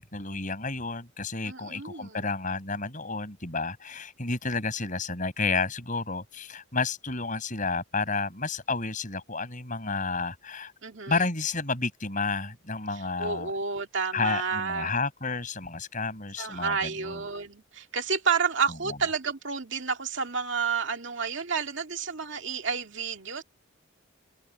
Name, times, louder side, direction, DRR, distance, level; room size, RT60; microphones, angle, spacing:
voice 1, 0.0-10.7 11.1-13.5 14.1-17.2, left 4 dB, 40° left, 5.9 m, -31 dB
voice 2, 1.5-2.3 10.8-11.2 12.9-14.9 16.4-23.4, right 5 dB, 60° right, 2.4 m, -30 dB
open air
head